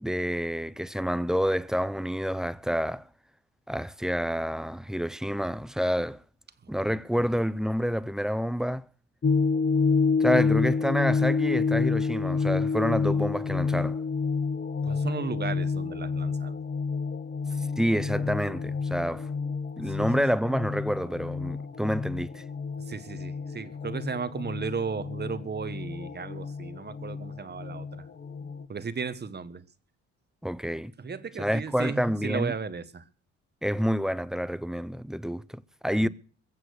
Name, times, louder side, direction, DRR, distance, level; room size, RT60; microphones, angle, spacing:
voice 1, 0.0-3.0 3.7-6.2 6.7-8.8 10.2-14.0 17.8-19.3 19.8-22.4 30.4-30.9 31.4-32.5 33.6-36.1, equal, ahead, 0.6 m, -28 dB
voice 2, 6.6-7.0 14.8-16.6 19.9-20.1 22.9-28.0 28.7-29.6 31.0-33.1 36.0-36.1, right 5 dB, 35° right, 1.3 m, -35 dB
sound 1, 9.2-28.6, left 5 dB, 35° left, 1.1 m, -29 dB
22.0 x 7.6 x 6.5 m
cardioid pair, 90°, 30 cm